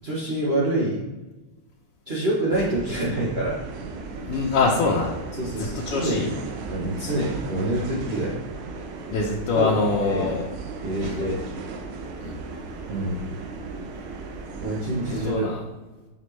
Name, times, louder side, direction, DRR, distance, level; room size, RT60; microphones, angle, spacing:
voice 1, 0.0-1.1 2.1-3.6 5.4-6.3 6.7-8.4 9.5-9.7 10.0-10.3 10.8-11.4 12.9-13.3 14.6-15.5, right 1 dB, 50° right, -6 dB, 0.7 m, -26 dB
sound 1, 2.5-15.3, right 4 dB, 80° right, 1.5 m, -36 dB
voice 2, 4.2-5.1 5.6-6.3 9.1-10.5 11.0-11.2 12.2-12.4 15.1-15.6, left 4 dB, 90° left, -3 dB, 1.7 m, -24 dB
6.0 x 5.0 x 3.1 m, 1.2 s
omnidirectional pair, 2.4 m